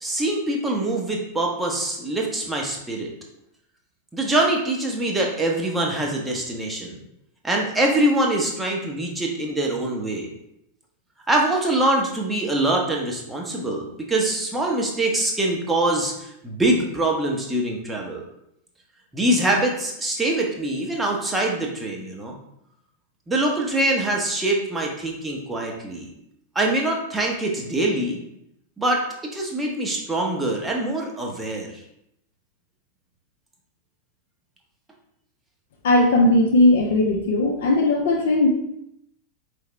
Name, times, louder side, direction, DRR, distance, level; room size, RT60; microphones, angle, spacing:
voice 1, 0.0-3.1 4.1-7.0 7.4-10.3 11.3-18.3 19.1-22.3 23.3-26.1 26.5-28.2 28.8-29.0 29.3-31.7, right 1 dB, 10° right, 0 dB, 0.9 m, -24 dB
voice 2, 35.8-38.5, left 2 dB, 55° left, 0 dB, 0.6 m, -18 dB
4.7 x 3.4 x 3.1 m, 0.77 s
figure-of-eight pair, 90°, 0 cm